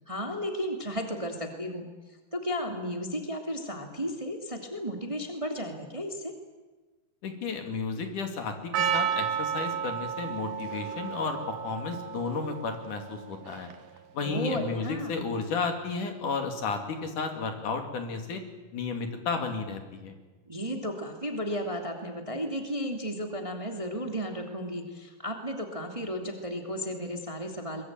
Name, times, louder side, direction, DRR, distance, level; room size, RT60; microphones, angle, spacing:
voice 1, 0.1-1.9 2.3-6.3 14.2-15.2 20.5-27.8, equal, 10° right, 3 dB, 2.3 m, -34 dB
voice 2, 7.2-13.7 14.1-18.4 18.7-20.1, left 4 dB, 65° left, 5 dB, 4.0 m, -33 dB
Percussion, 8.7-14.0, right 8 dB, 80° right, 2.9 m, -32 dB
23.0 x 21.5 x 9.0 m, 1.2 s
omnidirectional pair, 3.8 m